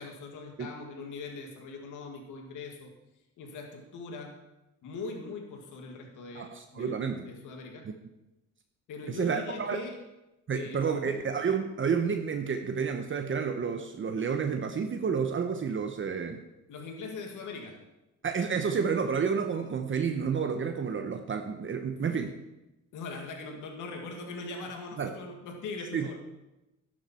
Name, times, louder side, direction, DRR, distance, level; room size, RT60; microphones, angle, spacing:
voice 1, 0.0-2.9 3.4-4.3 4.8-7.0 7.2-7.9 8.9-10.0 10.5-11.2 16.7-17.8 21.9-22.3 22.9-26.2, left 4 dB, 85° left, 2 dB, 2.2 m, -41 dB
voice 2, 6.3-7.3 7.8-7.9 9.1-9.8 10.5-16.4 18.2-22.3 25.0-25.1 25.9-26.1, right 6 dB, 40° right, 5 dB, 1.1 m, -30 dB
12.0 x 11.5 x 4.4 m, 0.96 s
cardioid pair, 90°, 30 cm